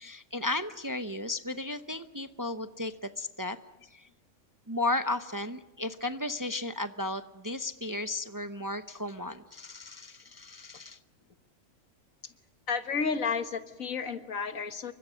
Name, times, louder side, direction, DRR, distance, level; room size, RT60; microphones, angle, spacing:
voice 1, 0.0-3.6 3.9-4.1 4.7-11.0, left 2 dB, 20° right, 9 dB, 0.7 m, -34 dB
voice 2, 12.7-14.9, left 5 dB, 80° left, 9 dB, 1.9 m, -32 dB
29.0 x 24.0 x 6.4 m, 1.1 s
omnidirectional pair, 1.4 m